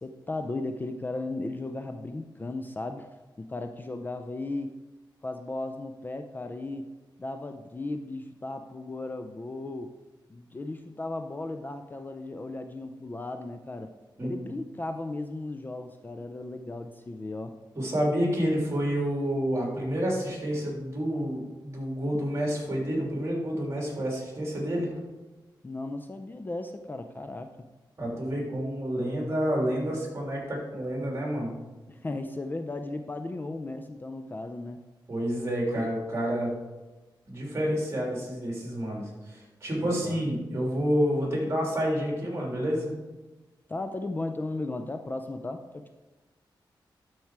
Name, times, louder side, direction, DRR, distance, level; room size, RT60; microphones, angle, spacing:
voice 1, 0.0-3.1 3.4-4.8 5.2-6.9 7.2-9.9 10.3-13.9 14.2-17.6 25.6-27.5 31.9-34.8 39.8-40.2 43.7-45.9, left 2 dB, 25° left, 6 dB, 0.4 m, -36 dB
voice 2, 17.7-24.9 28.0-31.5 35.1-36.5 37.3-42.9, equal, 35° right, -2 dB, 3.0 m, -29 dB
11.5 x 4.6 x 4.7 m, 1.2 s
wide cardioid pair, 115°, 8 cm